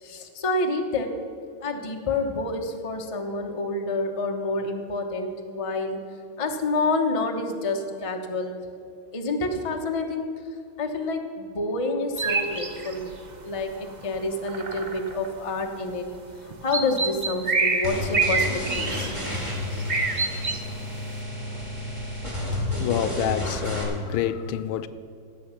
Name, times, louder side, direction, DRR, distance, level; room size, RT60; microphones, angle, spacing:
voice 1, 0.0-1.1 1.6-6.0 6.4-8.6 9.1-10.3 10.8-13.1 13.4-16.0 16.4-18.4 18.7-19.1, left 2 dB, 25° left, 0.7 m, -28 dB
sound 1, 12.2-13.1 13.6-13.7 13.9-14.2 14.5-15.4 16.2-16.3 16.5-19.5 19.8-20.6, right 4 dB, 70° right, 0.4 m, -26 dB
sound 2, 17.8-23.8, left 1 dB, 15° right, 2.5 m, -31 dB
voice 2, 22.8-24.9, left 10 dB, 80° left, 1.3 m, -28 dB
17.5 x 7.8 x 5.8 m
omnidirectional pair, 2.3 m